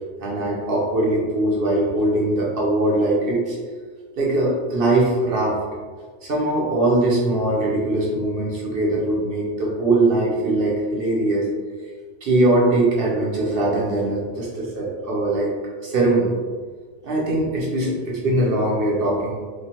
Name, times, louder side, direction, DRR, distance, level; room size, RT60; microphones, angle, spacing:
voice 1, 0.2-3.6 4.2-5.6 6.2-11.5 12.2-15.5 15.8-16.6 17.0-19.4, right 2 dB, 55° right, -4 dB, 0.9 m, -21 dB
3.0 x 2.3 x 2.9 m, 1.5 s
omnidirectional pair, 1.2 m